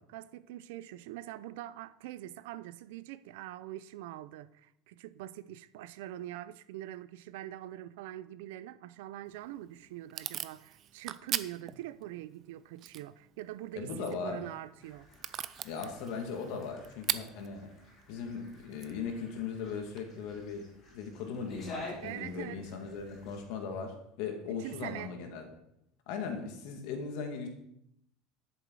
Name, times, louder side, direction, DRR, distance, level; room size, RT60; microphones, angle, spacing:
voice 1, 0.0-15.1 22.0-22.6 24.5-25.1, right 14 dB, 85° right, 0.5 m, -44 dB
Packing tape duct tape / Tearing, 9.2-20.0, right 10 dB, 30° right, 0.4 m, -42 dB
voice 2, 13.8-14.4 15.6-17.7 18.1-20.6 20.9-25.4 26.1-27.5, left 5 dB, 60° left, 2.2 m, -38 dB
sound 1, 14.8-23.4, left 2 dB, 25° left, 3.6 m, -51 dB
12.0 x 7.1 x 4.8 m
cardioid pair, 175°, 0 cm